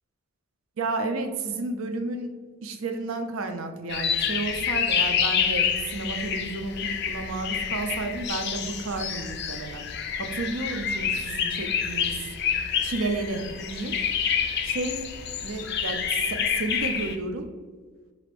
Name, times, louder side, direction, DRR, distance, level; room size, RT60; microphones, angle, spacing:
voice 1, 0.8-2.3 2.6-9.9 10.2-12.2 12.8-14.0 14.6-15.0 15.4-17.5, right 3 dB, 70° right, 6 dB, 0.5 m, -32 dB
sound 1, 3.9-17.2, left 7 dB, 50° left, 0.4 m, -28 dB
5.2 x 2.5 x 3.3 m, 1.4 s
head